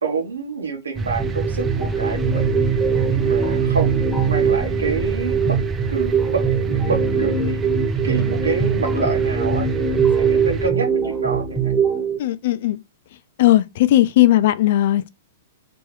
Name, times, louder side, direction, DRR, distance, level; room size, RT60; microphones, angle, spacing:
voice 1, 0.0-2.7 3.1-5.6 5.9-7.6 8.0-11.7, right 4 dB, 90° right, 1.3 m, -27 dB
sound 1, 1.0-10.7, right 3 dB, 20° right, 0.5 m, -28 dB
sound 2, 1.2-12.2, right 6 dB, ahead, 1.3 m, -21 dB
voice 2, 12.2-12.8 13.4-15.1, left 14 dB, 60° left, 0.5 m, -17 dB
3.4 x 3.1 x 3.3 m
hypercardioid pair, 120°, 0 cm